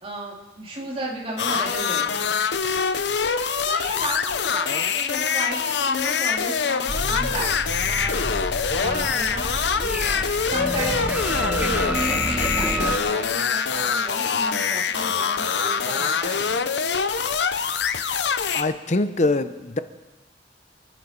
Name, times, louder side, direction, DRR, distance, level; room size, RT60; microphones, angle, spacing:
voice 1, 0.0-2.2 3.6-7.6 7.9-8.3 8.7-9.5 10.5-16.5, right 1 dB, 30° right, -3 dB, 3.0 m, -33 dB
sound 1, 1.4-18.6, left 6 dB, 75° left, 0.7 m, -24 dB
sound 2, 6.9-13.0, equal, 10° right, 1.2 m, -29 dB
voice 2, 18.5-19.8, left 2 dB, 40° left, 11 dB, 0.7 m, -23 dB
28.0 x 10.0 x 4.5 m, 1.2 s
head